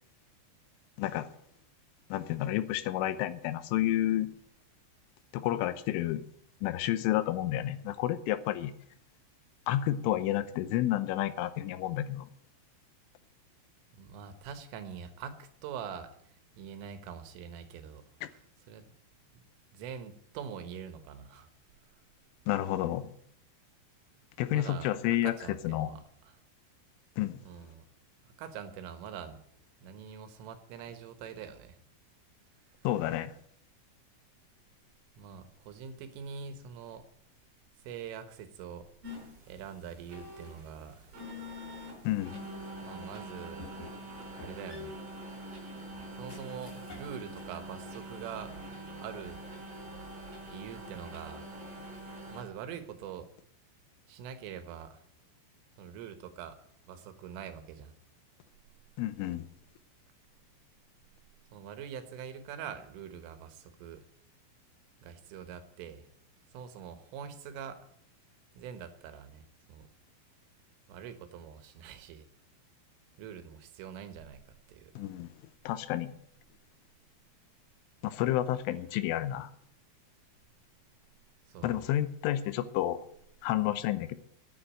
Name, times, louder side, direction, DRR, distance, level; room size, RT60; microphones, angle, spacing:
voice 1, 1.0-1.3 2.1-4.3 5.3-6.2 6.6-8.7 9.7-12.3 18.2-18.3 22.5-23.1 24.4-25.3 25.6-25.9 27.2-27.4 32.8-33.3 42.0-42.3 59.0-59.5 75.0-75.3 75.7-76.1 78.0-79.5 81.6-83.0 83.4-84.1, left 13 dB, 85° left, 13 dB, 3.3 m, -30 dB
voice 2, 14.0-16.1 16.6-18.4 18.7-18.9 19.7-21.5 24.5-26.3 27.4-27.8 28.4-29.4 29.8-31.8 35.2-37.1 37.9-38.9 39.5-41.1 42.8-43.7 44.4-44.9 46.2-48.6 49.0-49.4 50.5-51.5 52.3-53.3 54.1-55.0 55.8-56.6 56.9-57.9 61.5-64.1 65.0-66.1 66.5-67.8 68.6-69.9 70.9-72.3 73.2-74.9 81.5-81.9, right 7 dB, 85° right, 9 dB, 3.9 m, -44 dB
sound 1, 39.0-52.4, equal, 35° right, 4.6 m, -44 dB
sound 2, 40.4-40.8 41.3-42.4 42.9-43.0 43.6-44.1 44.4-47.6 48.0-48.9, left 1 dB, 20° left, 6.0 m, -53 dB
10.0 x 9.7 x 8.9 m, 0.67 s
omnidirectional pair, 5.6 m